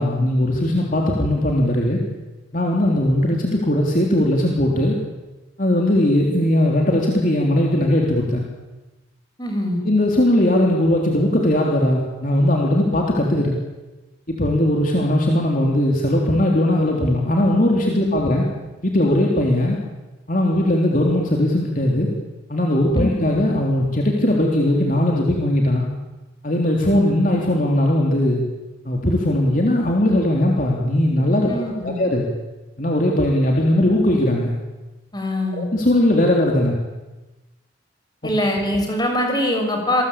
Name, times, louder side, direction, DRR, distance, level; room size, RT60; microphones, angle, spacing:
voice 1, 0.0-2.0 2.5-5.0 5.6-8.4 9.8-13.5 14.3-18.4 18.8-19.8 20.3-22.1 22.5-25.9 26.4-28.4 28.9-32.3 32.8-34.5 35.5-36.8, left 1 dB, 45° left, -1 dB, 3.5 m, -19 dB
voice 2, 9.4-9.8 22.9-23.0 31.5-32.0 35.1-35.7 38.2-40.0, left 1 dB, 20° left, 2 dB, 6.2 m, -23 dB
27.5 x 21.5 x 8.8 m, 1.1 s
head